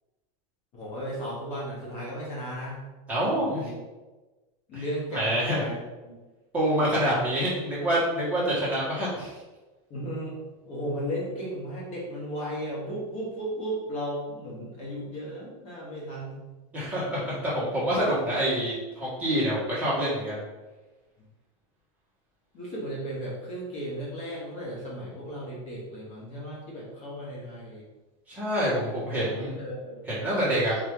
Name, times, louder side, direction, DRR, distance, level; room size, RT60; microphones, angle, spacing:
voice 1, 0.7-2.8 3.1-3.7 4.7-5.8 6.0-6.1 6.8-7.2 9.9-10.4 10.7-16.4 22.5-27.8 28.7-28.9 29.2-30.0, equal, 35° left, -5 dB, 1.2 m, -35 dB
voice 2, 3.1-3.7 4.7-4.8 5.1-5.6 6.5-9.3 16.7-20.4 28.3-29.5 30.2-30.8, equal, 10° right, -9 dB, 1.4 m, -26 dB
4.5 x 2.8 x 3.6 m, 1.2 s
supercardioid pair, 160°, 18 cm